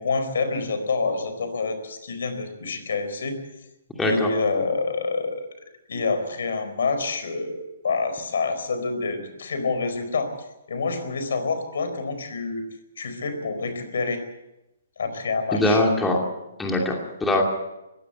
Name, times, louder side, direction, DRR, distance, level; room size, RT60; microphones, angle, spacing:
voice 1, 0.0-3.4 4.0-5.4 5.9-7.6 7.8-10.3 10.7-12.6 13.0-14.2 15.0-15.8, left 4 dB, 75° left, 9 dB, 4.5 m, -27 dB
voice 2, 4.0-4.3 15.5-16.2 16.6-17.4, left 1 dB, 5° left, 0 dB, 2.6 m, -22 dB
21.0 x 16.0 x 7.9 m, 0.94 s
hypercardioid pair, 160°, 0 cm